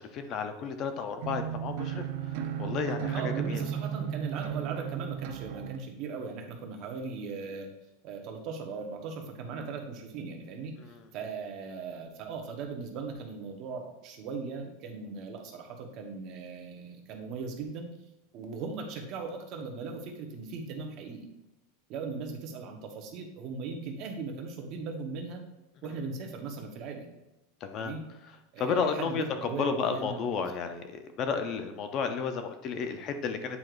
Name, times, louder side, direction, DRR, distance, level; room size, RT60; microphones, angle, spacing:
voice 1, 0.0-2.3 2.6-3.6 10.9-11.0 27.6-27.9 28.6-33.6, left 5 dB, 35° left, 7 dB, 0.5 m, -32 dB
sound 1, 1.2-5.8, right 9 dB, 60° right, 0.5 m, -34 dB
voice 2, 3.1-7.7 8.0-17.9 18.3-21.3 21.9-25.4 25.8-27.1 27.8-28.0 28.5-30.2, right 4 dB, 40° right, 2 dB, 1.0 m, -38 dB
8.5 x 4.6 x 2.5 m, 0.95 s
supercardioid pair, 155°, 0 cm